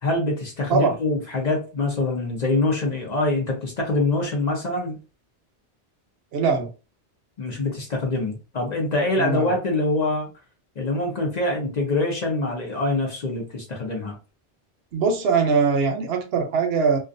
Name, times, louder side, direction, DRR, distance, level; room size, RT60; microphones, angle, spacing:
voice 1, 0.0-5.0 7.4-10.3 10.8-14.2, left 2 dB, 45° left, 0.6 m, -24 dB
voice 2, 6.3-6.7 9.2-9.5 14.9-17.0, right 5 dB, 65° right, 0.8 m, -21 dB
2.4 x 2.3 x 2.5 m
omnidirectional pair, 1.2 m